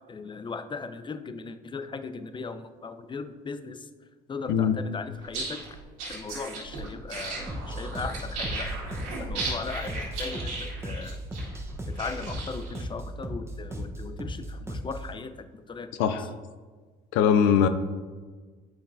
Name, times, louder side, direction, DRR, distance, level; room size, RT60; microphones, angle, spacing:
voice 1, 0.1-3.9 4.3-5.6 6.1-8.7 9.2-11.2 11.9-15.9 16.2-16.3, left 4 dB, 25° left, 10 dB, 0.5 m, -38 dB
sound 1, 5.2-12.8, right 3 dB, 90° right, 1.9 m, -36 dB
sound 2, 7.5-15.1, equal, 15° right, 0.9 m, -36 dB
voice 2, 17.1-17.7, left 8 dB, 85° left, 10 dB, 0.5 m, -21 dB
8.7 x 5.2 x 2.6 m, 1.4 s
supercardioid pair, 70°, 19 cm